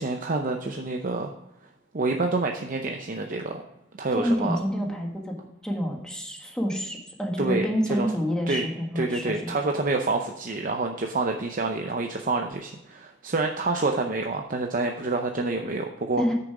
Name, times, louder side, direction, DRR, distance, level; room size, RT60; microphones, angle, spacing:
voice 1, 0.0-1.3 1.9-3.6 4.0-4.6 7.4-8.1 8.5-8.7 9.0-16.2, right 3 dB, 40° right, 4 dB, 0.7 m, -27 dB
voice 2, 4.1-5.3 5.6-9.6 16.2-16.3, equal, 5° left, 0 dB, 1.6 m, -28 dB
9.0 x 6.9 x 4.8 m, 0.90 s
head